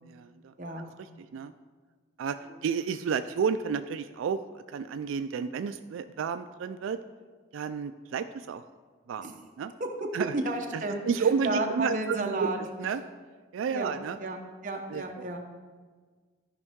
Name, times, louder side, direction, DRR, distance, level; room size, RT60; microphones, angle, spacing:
voice 1, 0.0-0.5 1.3-1.5 2.2-7.0 7.5-8.6 9.1-9.3 9.6-9.7 10.1-10.4 10.7-12.5 12.8-13.0 13.5-14.2 14.9-15.3, right 6 dB, 90° right, 10 dB, 0.3 m, -31 dB
voice 2, 10.3-12.6 13.7-13.9 14.2-15.4, right 2 dB, 40° right, 2 dB, 0.9 m, -32 dB
13.5 x 5.4 x 3.6 m, 1.5 s
head